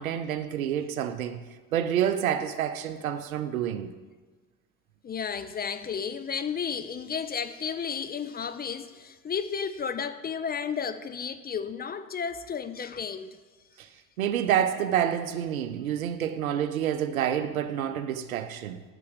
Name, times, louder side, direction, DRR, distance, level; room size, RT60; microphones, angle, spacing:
voice 1, 0.0-4.0 13.8-13.9 14.2-18.8, right 10 dB, 75° right, 0.7 m, -28 dB
voice 2, 5.0-13.4, left 6 dB, 25° left, 0.5 m, -33 dB
8.4 x 7.0 x 7.8 m
figure-of-eight pair, 50°, 42 cm